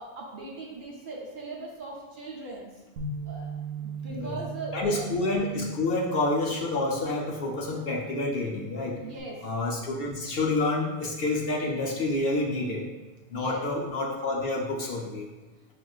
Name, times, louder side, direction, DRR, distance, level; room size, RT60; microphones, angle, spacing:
voice 1, 0.0-2.8 3.2-3.5 3.8-5.0 9.0-9.5 13.3-13.6, right 3 dB, 55° right, -3 dB, 0.8 m, -39 dB
Bass guitar, 3.0-9.2, right 4 dB, 85° right, 0.9 m, -40 dB
voice 2, 4.7-8.9 9.4-12.8 13.3-15.3, left 2 dB, 60° left, -2 dB, 0.8 m, -28 dB
6.1 x 2.4 x 2.3 m, 1.2 s
omnidirectional pair, 1.2 m